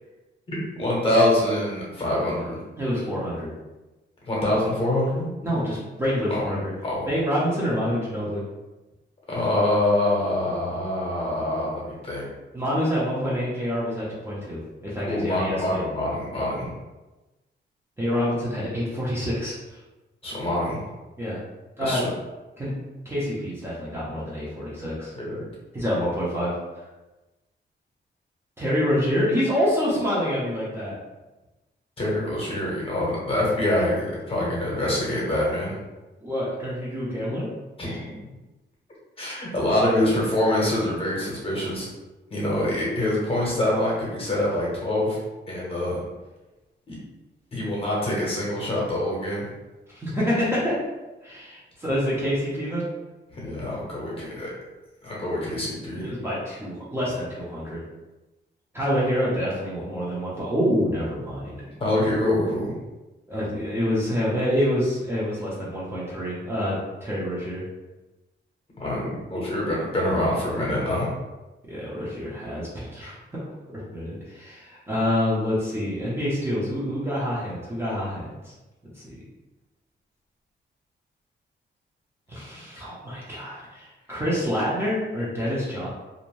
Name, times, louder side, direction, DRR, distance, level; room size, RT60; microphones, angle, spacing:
voice 1, 0.5-2.6 4.2-5.3 6.3-6.4 6.8-7.1 9.3-12.3 15.0-16.7 20.2-20.8 21.8-22.1 25.1-25.4 32.0-35.8 37.8-38.2 39.2-41.9 42.3-45.2 45.5-46.0 46.9-47.0 47.5-49.5 53.3-54.5 55.0-56.1 61.8-62.7 68.8-71.1, left 1 dB, 30° left, -5 dB, 0.8 m, -25 dB
voice 2, 2.8-3.5 5.4-6.7 7.1-8.4 12.5-15.8 18.0-19.5 21.2-21.4 21.8-22.0 22.6-22.7 23.1-25.1 25.7-26.5 28.6-30.9 36.2-37.5 49.9-50.8 51.2-52.9 56.0-57.8 58.7-61.6 63.3-67.6 71.7-73.2 73.9-78.5 79.0-79.2 82.3-85.9, equal, 15° right, -8 dB, 0.5 m, -27 dB
2.5 x 2.0 x 3.0 m, 1.1 s
wide cardioid pair, 180°, 19 cm